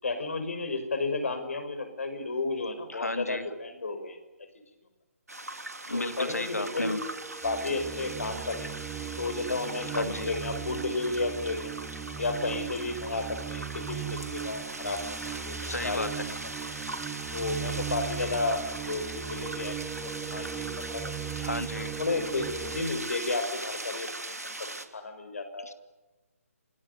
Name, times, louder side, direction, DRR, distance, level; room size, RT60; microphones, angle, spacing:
voice 1, 0.0-4.2 5.9-6.9 7.4-8.7 9.2-11.7 12.2-16.4 17.3-19.8 20.0-21.1 22.0-24.5 24.9-25.7, left 3 dB, 60° left, 7 dB, 6.1 m, -32 dB
voice 2, 2.9-3.5 5.9-7.0 9.9-10.3 15.3-16.1 21.4-22.0 25.6-25.7, left 1 dB, 80° left, 9 dB, 2.6 m, -34 dB
sound 1, 5.3-24.9, right 2 dB, 80° right, 3.1 m, -40 dB
sound 2, 5.9-22.8, right 10 dB, 10° right, 1.2 m, -39 dB
29.0 x 20.0 x 9.6 m, 1.1 s
figure-of-eight pair, 140°, 8 cm